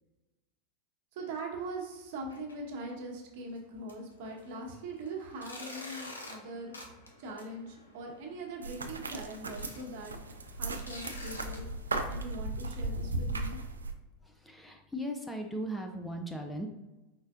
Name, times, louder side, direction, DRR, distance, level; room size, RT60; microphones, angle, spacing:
voice 1, 1.1-6.7 7.2-10.1 10.5-11.7 12.1-13.6, right 2 dB, 60° right, 0 dB, 1.1 m, -41 dB
sound 1, 2.1-2.5 2.9-3.0 3.5-3.6 3.9-11.6, left 2 dB, 90° left, 0.8 m, -49 dB
sound 2, 8.6-13.9, right 2 dB, 85° right, 0.4 m, -36 dB
voice 2, 14.2-16.7, equal, 5° left, 2 dB, 0.5 m, -38 dB
4.5 x 4.3 x 2.5 m, 1.1 s
hypercardioid pair, 90°, 0 cm